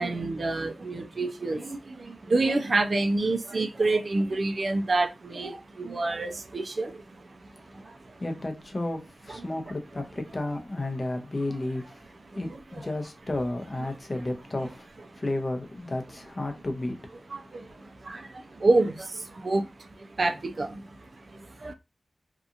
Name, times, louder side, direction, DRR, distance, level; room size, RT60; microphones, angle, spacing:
voice 1, 0.0-8.2 9.3-9.6 12.2-12.9 13.8-13.9 17.3-21.7, right 2 dB, 50° right, 0.4 m, -29 dB
voice 2, 8.2-11.8 12.3-14.9 15.2-17.1, left 2 dB, 35° left, 0.6 m, -32 dB
2.8 x 2.4 x 2.5 m
wide cardioid pair, 95°, 0 cm